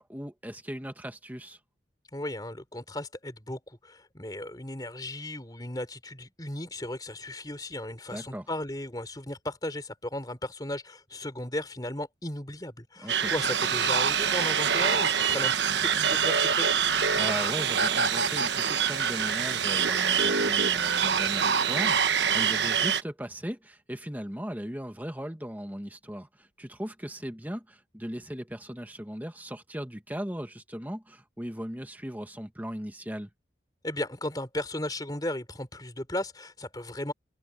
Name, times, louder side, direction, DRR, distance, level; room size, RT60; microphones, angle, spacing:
voice 1, 0.0-1.6 8.1-8.5 13.0-13.3 17.1-33.3, equal, 10° right, 1.7 m, -38 dB
voice 2, 2.1-16.8 33.8-37.1, left 1 dB, 20° left, 4.0 m, -36 dB
sound 1, 13.1-23.0, right 7 dB, 75° right, 1.2 m, -25 dB
head